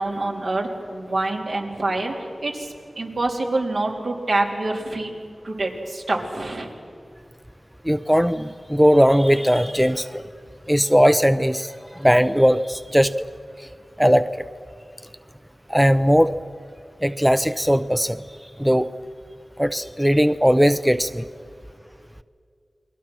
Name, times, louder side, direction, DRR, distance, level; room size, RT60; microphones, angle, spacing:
voice 1, 0.0-5.1 5.4-6.7, right 2 dB, 75° right, 0 dB, 3.4 m, -26 dB
voice 2, 7.8-10.2 10.7-11.7 12.0-13.3 14.0-14.3 15.7-16.3 17.0-18.2 18.6-18.9 19.6-21.2, equal, 5° right, 12 dB, 0.6 m, -18 dB
29.0 x 21.5 x 6.2 m, 2.3 s
wide cardioid pair, 55°, 0 cm